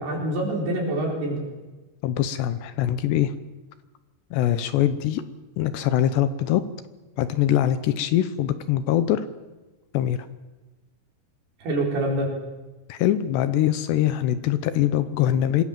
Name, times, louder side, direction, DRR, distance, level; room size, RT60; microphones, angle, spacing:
voice 1, 0.0-1.4 11.6-12.3, right 1 dB, 60° right, -1 dB, 6.1 m, -26 dB
voice 2, 2.0-3.3 4.3-5.2 5.6-6.6 7.2-9.3 9.9-10.2 12.9-15.6, left 11 dB, 75° left, 12 dB, 2.9 m, -23 dB
26.0 x 20.5 x 7.5 m, 1.2 s
omnidirectional pair, 5.3 m